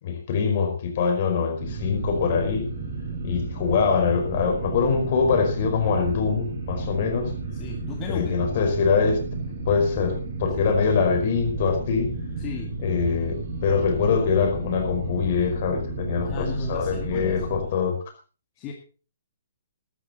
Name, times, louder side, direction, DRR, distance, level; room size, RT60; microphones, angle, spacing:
voice 1, 0.0-2.7 3.2-7.3 8.1-9.2 9.7-12.1 12.8-13.4 13.6-18.0, left 5 dB, 50° left, 4 dB, 5.0 m, -23 dB
sound 1, 1.6-17.6, right 3 dB, 55° right, 5.9 m, -33 dB
voice 2, 7.5-8.4 10.6-10.7 12.4-12.7 16.2-17.7 18.6-18.7, left 5 dB, 30° left, 2 dB, 2.0 m, -35 dB
14.0 x 12.5 x 4.3 m, 0.38 s
hypercardioid pair, 135°, 0 cm